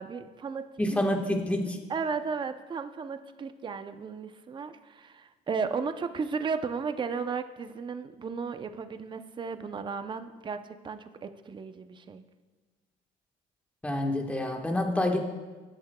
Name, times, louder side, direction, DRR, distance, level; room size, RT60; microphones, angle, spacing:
voice 1, 0.0-1.0 1.9-12.2, right 5 dB, 30° right, 9 dB, 0.6 m, -35 dB
voice 2, 0.8-1.8 13.8-15.2, left 1 dB, 10° left, 2 dB, 1.3 m, -27 dB
19.0 x 8.5 x 2.2 m, 1.3 s
cardioid pair, 110°, 17 cm